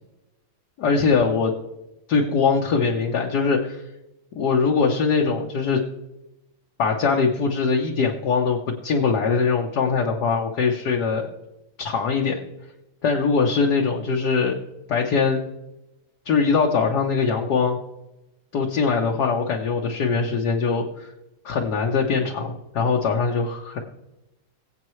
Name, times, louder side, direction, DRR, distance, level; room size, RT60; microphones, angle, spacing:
voice 1, 0.8-1.5 2.1-3.8 4.4-5.8 6.8-11.3 11.8-12.4 13.0-14.6 14.9-15.4 16.2-17.8 18.5-21.1 21.4-23.8, left 5 dB, 65° left, 0 dB, 1.5 m, -22 dB
22.5 x 8.0 x 3.2 m, 0.95 s
omnidirectional pair, 1.9 m